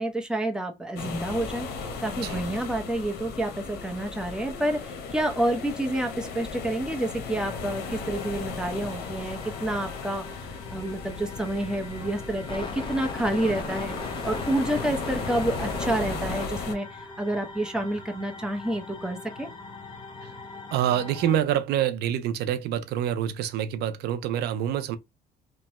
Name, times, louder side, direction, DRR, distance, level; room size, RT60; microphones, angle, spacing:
voice 1, 0.0-10.2 10.7-13.9 14.2-19.5, right 1 dB, 5° right, 0.7 m, -29 dB
sound 1, 1.0-16.7, left 4 dB, 75° left, 0.8 m, -36 dB
sound 2, 7.4-21.4, left 3 dB, 30° left, 0.7 m, -39 dB
voice 2, 20.7-25.0, right 10 dB, 75° right, 0.4 m, -26 dB
2.9 x 2.1 x 2.9 m
cardioid pair, 110°, 17 cm